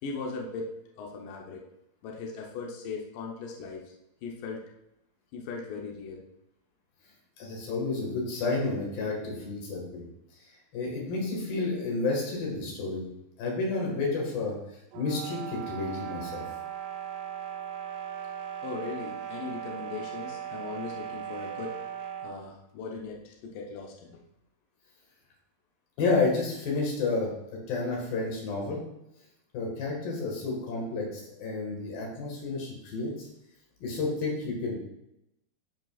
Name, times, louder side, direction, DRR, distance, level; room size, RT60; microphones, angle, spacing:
voice 1, 0.0-1.6 2.0-3.9 4.2-4.6 5.3-6.2 18.6-21.8 22.2-24.2, left 4 dB, 80° left, -1 dB, 1.9 m, -38 dB
voice 2, 7.4-10.0 10.7-13.0 13.4-14.6 14.9-16.4 26.0-28.8 29.5-33.3 33.8-34.8, left 3 dB, 60° left, -1 dB, 3.3 m, -30 dB
sound 1, 14.9-22.4, right 9 dB, 80° right, 2.7 m, -38 dB
13.0 x 5.3 x 2.4 m, 0.86 s
omnidirectional pair, 5.1 m